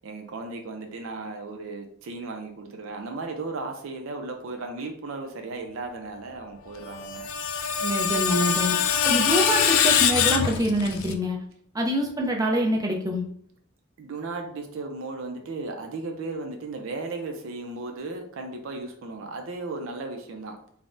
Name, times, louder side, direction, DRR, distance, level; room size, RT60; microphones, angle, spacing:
voice 1, 0.0-7.2 9.1-9.2 14.0-20.5, right 3 dB, 75° right, 4 dB, 0.4 m, -35 dB
Screech, 6.9-11.1, left 8 dB, 75° left, 0.3 m, -23 dB
voice 2, 7.8-8.8 9.0-11.4 11.7-13.2, equal, 15° right, 1 dB, 0.4 m, -25 dB
3.3 x 2.1 x 2.5 m, 0.65 s
head